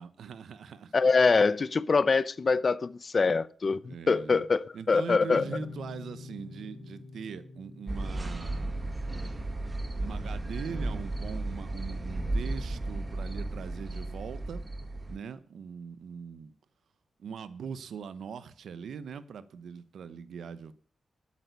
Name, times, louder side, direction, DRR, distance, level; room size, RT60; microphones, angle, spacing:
voice 1, 0.0-1.0 3.9-4.4 4.7-8.9 10.0-14.6 15.1-16.5 17.2-20.7, right 6 dB, 80° right, 1.0 m, -41 dB
voice 2, 0.9-5.4, left 4 dB, 35° left, 0.6 m, -24 dB
sound 1, 5.3-12.5, left 3 dB, 65° left, 3.3 m, -48 dB
sound 2, 7.9-15.2, right 2 dB, 20° right, 1.9 m, -34 dB
12.5 x 8.7 x 8.2 m
wide cardioid pair, 140°, 0 cm